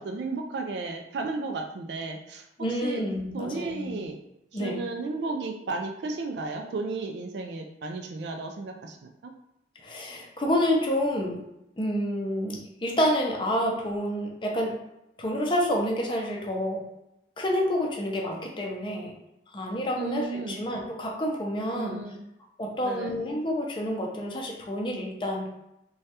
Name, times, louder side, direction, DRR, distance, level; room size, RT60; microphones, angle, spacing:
voice 1, 0.0-2.5 2.8-3.0 3.3-4.2 4.5-9.3 19.9-20.6 21.7-22.3 22.8-23.2, right 3 dB, 75° right, 4 dB, 0.3 m, -34 dB
voice 2, 2.6-4.0 4.5-4.9 9.8-11.4 11.8-14.7 15.2-16.8 17.4-19.1 19.5-22.0 22.6-25.5, equal, 30° left, 0 dB, 0.5 m, -28 dB
3.1 x 2.3 x 2.8 m, 0.86 s
head